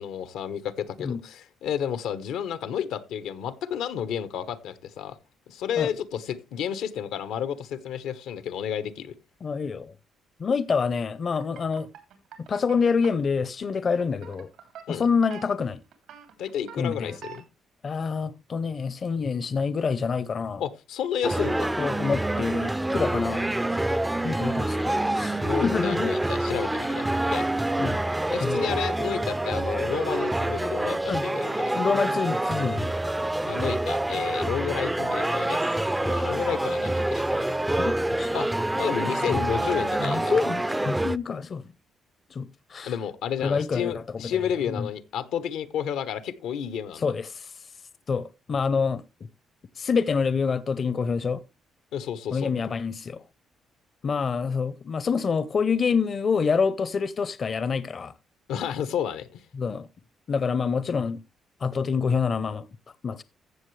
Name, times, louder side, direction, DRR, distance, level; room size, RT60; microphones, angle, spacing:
voice 1, 0.0-5.2 5.5-9.1 14.9-15.0 16.4-17.4 20.6-21.7 25.4-27.5 28.3-31.7 33.4-35.6 36.0-37.5 38.3-38.5 38.8-40.4 42.8-47.0 51.9-52.5 58.5-59.4, left 9 dB, 85° left, 0.9 m, -31 dB
voice 2, 9.4-9.9 10.4-11.9 12.5-14.5 14.9-15.8 16.8-17.2 17.8-20.6 21.8-23.5 23.9-26.1 27.8-28.0 28.4-28.7 31.1-31.2 31.7-32.9 37.8-38.3 39.0-39.6 40.0-41.6 42.3-42.9 43.4-44.9 47.0-47.5 48.1-49.0 49.8-51.4 52.3-53.2 54.0-58.1 59.6-59.9 60.3-61.2 61.6-62.7 63.0-63.2, left 5 dB, 45° left, 0.6 m, -27 dB
sound 1, 11.4-17.4, right 9 dB, 85° right, 2.9 m, -45 dB
sound 2, 21.2-41.2, right 1 dB, 10° right, 0.4 m, -27 dB
14.5 x 6.9 x 3.2 m
cardioid pair, 90°, 0 cm